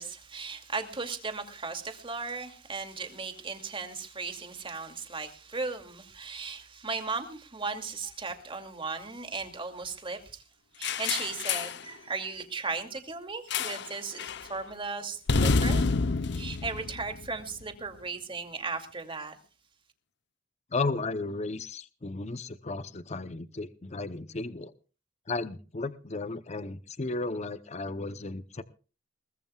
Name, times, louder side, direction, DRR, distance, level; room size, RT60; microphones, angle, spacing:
voice 1, 0.0-10.4 10.8-15.9 16.3-19.4, right 4 dB, 30° right, 2.5 m, -36 dB
sound 1, 10.8-11.8 13.5-13.9 14.2-14.5 15.3-17.6, left 4 dB, 65° left, 0.8 m, -28 dB
voice 2, 20.7-24.7 25.3-28.6, left 3 dB, 35° left, 0.7 m, -34 dB
22.0 x 20.0 x 2.4 m
head